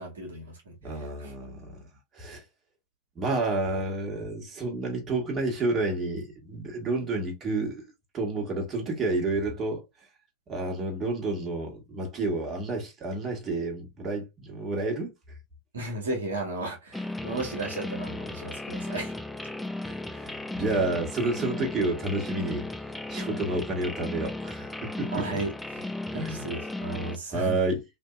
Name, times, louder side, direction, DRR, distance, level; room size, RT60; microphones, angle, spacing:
voice 1, 0.0-1.3 15.7-19.1 25.1-27.6, right 2 dB, 80° right, 1.1 m, -35 dB
voice 2, 0.8-1.8 2.1-2.4 3.1-7.8 8.1-9.8 10.5-15.1 19.8-22.7 23.1-25.3 26.1-26.5 27.3-27.8, right 2 dB, 30° right, 1.6 m, -30 dB
sound 1, 16.9-27.2, left 2 dB, 5° left, 0.4 m, -35 dB
3.5 x 2.6 x 2.4 m
figure-of-eight pair, 85°, 0 cm